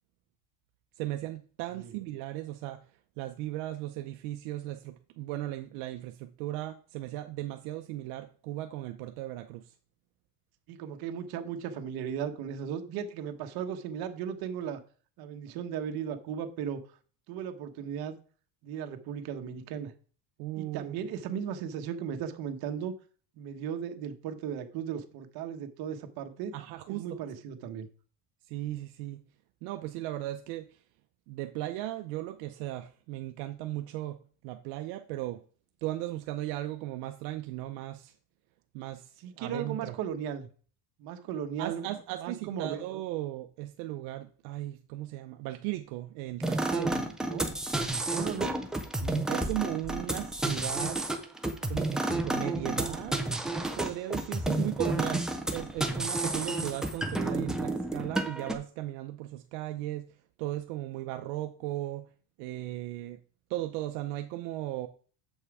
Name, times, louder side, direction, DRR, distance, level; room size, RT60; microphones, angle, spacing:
voice 1, 1.0-2.8 3.2-9.7 20.4-21.0 26.5-27.0 28.5-29.2 29.6-30.8 31.3-34.2 34.4-35.4 35.8-38.1 38.7-39.9 41.6-47.0 49.0-51.0 51.7-53.4 53.7-60.1 60.4-62.1 62.4-63.2 63.5-64.9, right 15 dB, 75° right, 6 dB, 0.7 m, -37 dB
voice 2, 10.7-14.8 15.2-16.8 17.3-18.2 18.6-19.9 20.6-22.9 23.4-26.5 26.9-27.9 39.2-40.5 41.0-41.8 42.2-42.8 47.3-47.5 48.1-48.6 54.5-54.7, right 8 dB, 55° right, 7 dB, 1.1 m, -36 dB
sound 1, 46.4-58.5, right 2 dB, ahead, 0.3 m, -31 dB
7.3 x 5.6 x 4.8 m, 0.42 s
cardioid pair, 160°, 45 cm